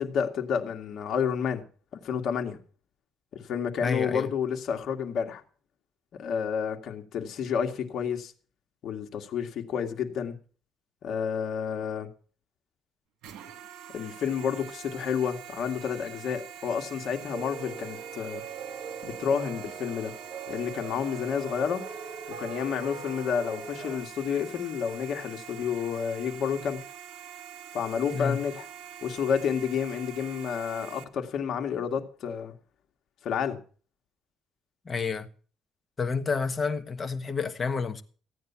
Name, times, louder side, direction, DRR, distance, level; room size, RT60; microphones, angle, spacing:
voice 1, 0.0-1.6 1.9-2.6 3.3-5.4 6.2-8.3 8.8-10.3 11.0-12.1 13.9-18.4 19.0-20.1 20.5-21.8 22.4-26.8 27.7-28.7 29.0-32.5 33.2-33.6, left 7 dB, 55° left, 2.0 m, -30 dB
voice 2, 3.8-4.3 28.1-28.4 34.8-35.3 36.0-38.0, left 5 dB, 25° left, 1.3 m, -29 dB
sound 1, 13.2-31.0, right 9 dB, 80° right, 1.8 m, -45 dB
sound 2, 17.3-24.0, right 5 dB, 45° right, 3.4 m, -41 dB
15.5 x 9.4 x 5.8 m
cardioid pair, 130°, 0 cm